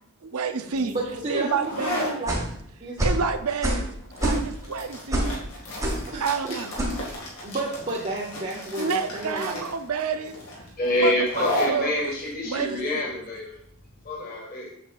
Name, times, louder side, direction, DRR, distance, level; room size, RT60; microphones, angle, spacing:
voice 1, 0.2-0.9 1.3-2.2 3.0-3.9 4.2-5.3 6.2-6.7 8.8-10.4 11.0-12.1 12.4-13.0, right 5 dB, 80° right, 8 dB, 0.6 m, -29 dB
sound 1, 0.7-14.1, left 1 dB, 65° left, 2.1 m, -35 dB
voice 2, 0.9-2.4 2.8-3.0 6.1-6.6 7.4-9.6, right 2 dB, 30° right, -5 dB, 0.8 m, -31 dB
sound 2, 2.3-2.5 3.0-3.2 3.6-3.9 4.2-4.6 5.1-5.4 5.8-6.1 6.8-7.0, right 1 dB, 15° right, 1.4 m, -25 dB
voice 3, 10.8-13.6 14.0-14.7, left 1 dB, 40° left, -4 dB, 1.8 m, -26 dB
7.6 x 7.1 x 2.5 m, 0.70 s
head